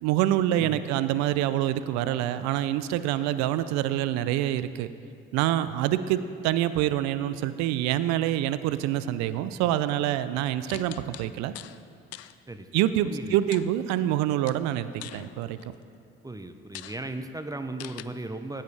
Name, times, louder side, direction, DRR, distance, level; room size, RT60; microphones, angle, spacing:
voice 1, 0.0-4.9 5.3-11.5 12.7-15.6, right 12 dB, 70° right, 13 dB, 0.5 m, -26 dB
sound 1, 10.7-11.8 12.1-12.3 13.5-14.2 14.5-15.8 16.3-16.4 16.7-17.0 17.8-18.0, left 14 dB, 60° left, 0.4 m, -43 dB
voice 2, 13.0-13.4 16.2-18.6, right 2 dB, 10° right, 7 dB, 0.8 m, -36 dB
15.0 x 8.9 x 3.3 m, 2.5 s
hypercardioid pair, 45°, 29 cm